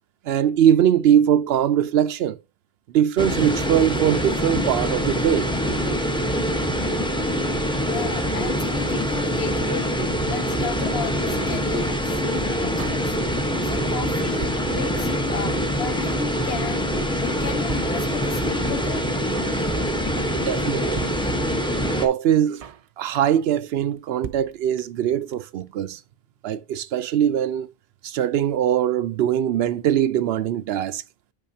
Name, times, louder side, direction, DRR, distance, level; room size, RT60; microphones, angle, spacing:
voice 1, 0.3-2.4 2.9-5.5 19.5-19.6 20.3-21.1 22.0-22.6 23.0-26.0 26.4-27.7 28.0-31.0, right 10 dB, 80° right, 0.8 m, -21 dB
sound 1, 3.2-22.1, equal, 5° left, 0.9 m, -24 dB
voice 2, 7.8-16.9 17.2-19.1, left 6 dB, 80° left, 1.0 m, -34 dB
Drum kit, 12.8-13.6 13.9-14.0 14.1-15.2 15.5-15.6 15.8-16.3 16.6-16.9 17.1-17.2 17.4-17.5 17.7-18.5 18.8-18.9 19.1-19.6 19.9-20.2 20.4-20.5 20.7-20.8 21.0-21.8 22.1-22.2 22.3-22.9 23.1-23.4 23.7-23.8 24.0-24.1 24.2-25.1 25.3-25.4 25.6-25.7, right 7 dB, 45° right, 0.5 m, -39 dB
8.9 x 5.3 x 2.7 m
omnidirectional pair, 1.0 m